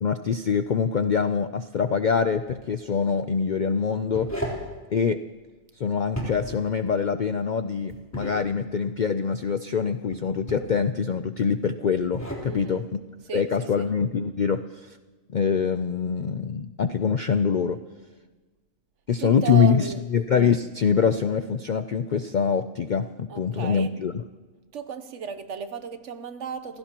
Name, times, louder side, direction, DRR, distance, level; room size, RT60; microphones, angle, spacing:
voice 1, 0.0-4.3 4.9-5.2 5.8-12.8 13.3-15.0 15.3-17.8 19.1-24.1, left 6 dB, 60° left, 0.5 m, -24 dB
sound 1, 2.3-2.6 3.8-4.7 6.0-6.6 7.9-8.4 10.1-10.8 11.9-12.5, equal, 10° left, 3.6 m, -34 dB
voice 2, 12.5-12.9 13.3-13.9 19.2-20.1 23.3-24.0 24.7-26.8, right 7 dB, 65° right, 1.1 m, -34 dB
28.5 x 16.0 x 3.0 m
omnidirectional pair, 1.4 m